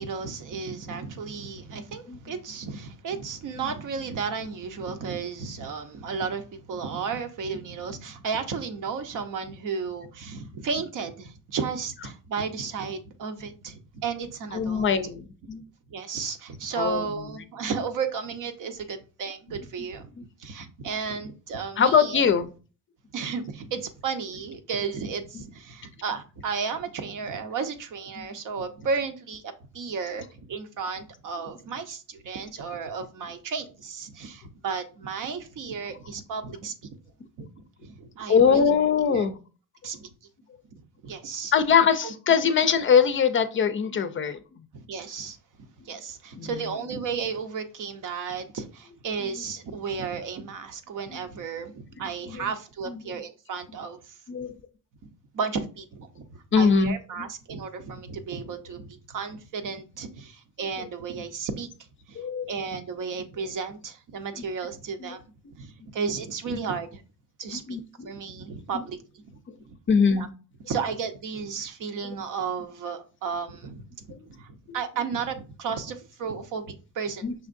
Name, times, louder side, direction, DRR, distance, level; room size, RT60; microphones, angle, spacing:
voice 1, 0.0-14.9 15.9-20.1 20.4-22.2 23.1-29.4 29.7-37.0 37.4-37.5 37.8-39.3 39.8-40.1 40.7-41.5 42.0-42.1 44.7-45.4 45.8-54.2 55.3-61.7 62.1-65.2 65.5-67.0 67.4-67.8 68.0-69.4 69.7-69.8 70.2-70.3 70.7-77.3, right 5 dB, 65° right, 0.8 m, -33 dB
voice 2, 14.5-15.6 16.7-17.3 19.5-19.7 20.2-20.3 21.8-22.5 25.3-25.4 28.2-28.3 30.1-30.2 31.3-31.4 38.3-39.4 41.5-44.6 46.3-46.8 49.2-49.3 51.1-51.2 52.0-52.6 52.8-53.1 54.3-54.6 56.5-57.3 60.6-60.9 62.2-62.5 65.0-65.2 67.5-68.1 68.7-68.9 69.9-70.3 72.0-72.1 74.1-74.3 74.7-75.0 77.2-77.3, left 6 dB, 40° left, 0.4 m, -23 dB
5.7 x 3.5 x 2.5 m
cardioid pair, 155°, 33 cm